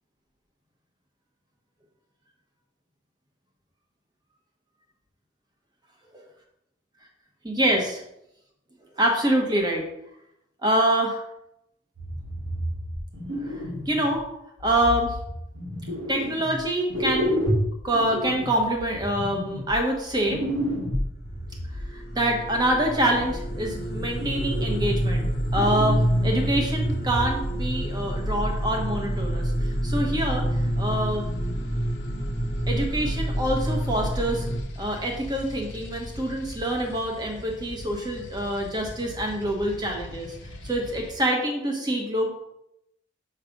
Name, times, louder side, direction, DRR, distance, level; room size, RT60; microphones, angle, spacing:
voice 1, 7.4-8.0 9.0-9.9 10.6-11.2 13.4-14.3 14.6-15.2 16.1-17.3 17.8-20.4 21.9-31.2 32.7-34.5 34.8-42.3, right 1 dB, 20° right, 1 dB, 1.1 m, -26 dB
sound 1, 12.0-14.2 14.6-16.6 16.9-21.9 22.9-23.8 24.2-25.2 25.5-27.5 27.8-28.0 28.5-28.6, equal, 90° right, 1.9 m, -31 dB
sound 2, 21.0-34.6, equal, 55° left, 1.0 m, -27 dB
sound 3, 24.1-41.1, left 1 dB, 80° left, 0.8 m, -43 dB
7.1 x 3.3 x 5.2 m, 0.83 s
head